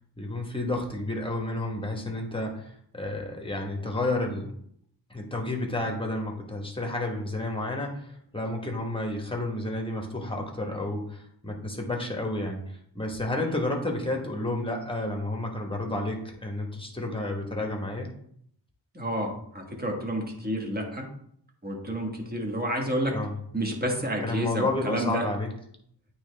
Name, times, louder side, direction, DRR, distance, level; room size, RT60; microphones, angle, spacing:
voice 1, 0.2-4.5 5.1-18.1 23.1-23.3 24.2-25.5, left 2 dB, 10° left, 1 dB, 1.2 m, -31 dB
voice 2, 18.9-21.1 21.6-23.1 23.5-25.2, equal, 20° right, 0 dB, 1.3 m, -30 dB
8.8 x 3.2 x 3.3 m, 0.67 s
wide cardioid pair, 85°, 45 cm